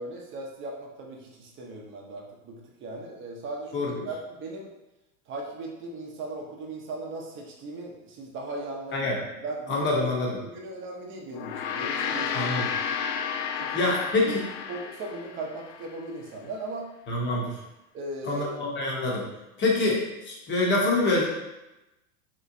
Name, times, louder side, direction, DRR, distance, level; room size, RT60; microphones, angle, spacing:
voice 1, 0.0-4.7 5.3-9.1 9.3-9.9 10.4-12.7 13.6-13.9 14.3-14.4 14.7-16.9 17.9-18.6, right 2 dB, 25° right, 0 dB, 0.7 m, -38 dB
voice 2, 9.7-10.4 12.3-12.7 13.7-14.4 17.1-17.5 18.3-19.2 19.6-21.3, left 2 dB, 25° left, -2 dB, 0.8 m, -25 dB
Gong, 11.3-15.9, left 7 dB, 70° left, 0.5 m, -32 dB
3.1 x 3.0 x 2.6 m, 0.98 s
hypercardioid pair, 120°, 45 cm